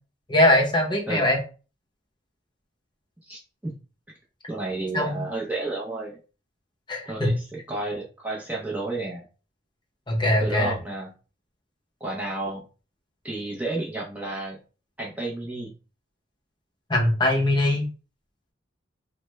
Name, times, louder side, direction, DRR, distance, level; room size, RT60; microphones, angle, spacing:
voice 1, 0.3-1.4 4.9-5.2 6.9-7.3 10.1-10.7 16.9-17.9, left 1 dB, 25° left, -1 dB, 0.8 m, -21 dB
voice 2, 3.3-3.8 4.5-6.2 7.1-9.2 10.4-11.1 12.0-12.6 13.2-14.6 15.0-15.7, right 2 dB, 10° right, -4 dB, 0.6 m, -31 dB
3.3 x 2.1 x 3.2 m, 0.35 s
head